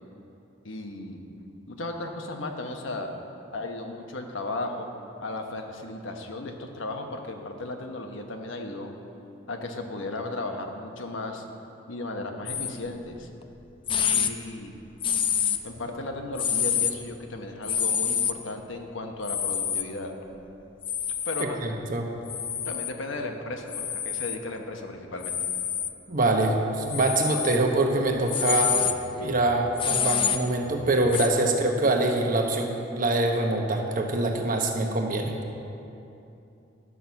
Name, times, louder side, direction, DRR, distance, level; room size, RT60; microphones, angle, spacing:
voice 1, 0.6-1.2 1.7-3.1 3.5-4.9 5.2-8.9 9.5-11.4 11.9-13.3 14.1-14.7 15.6-20.1 21.2-21.6 22.6-25.5, left 2 dB, 75° left, 4 dB, 1.0 m, -35 dB
sound 1, 12.5-12.7 13.4-13.5 13.9-14.3 15.0-15.8 16.4-16.9 17.6-18.3 19.2-19.8 20.8-21.5 22.3-22.9 23.7-24.4 25.2-25.9 26.9-27.6 28.1-31.3, left 8 dB, 25° left, 0.4 m, -27 dB
voice 2, 21.6-22.1 26.1-28.8 29.2-35.3, right 2 dB, 45° right, 2 dB, 1.0 m, -24 dB
11.0 x 6.1 x 7.0 m, 2.8 s
head